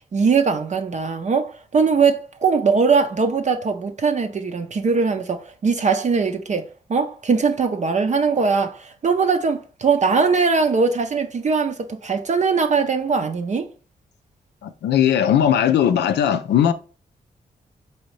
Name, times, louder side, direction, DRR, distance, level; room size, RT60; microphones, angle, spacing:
voice 1, 0.1-13.7, right 5 dB, 45° right, 0.5 m, -21 dB
voice 2, 14.6-16.7, left 9 dB, 75° left, 0.4 m, -18 dB
4.1 x 2.7 x 3.1 m
supercardioid pair, 45°, 18 cm